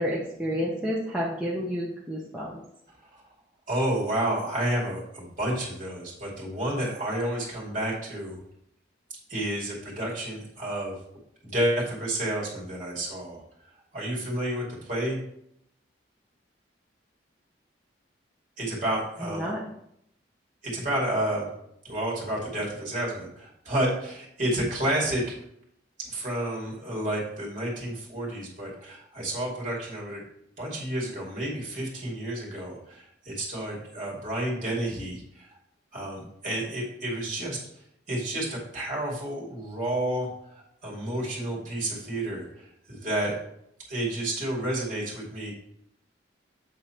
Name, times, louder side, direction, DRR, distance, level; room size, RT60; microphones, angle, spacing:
voice 1, 0.0-2.6 19.2-19.6, equal, 5° right, -6 dB, 0.8 m, -30 dB
voice 2, 3.7-8.4 9.3-10.9 11.4-13.4 13.9-15.2 18.6-19.5 20.6-21.5 21.8-25.4 26.0-30.2 30.6-35.5 35.9-37.6 38.1-43.3 43.9-45.5, right 1 dB, 40° right, -3 dB, 2.4 m, -30 dB
8.2 x 3.9 x 4.4 m, 0.76 s
head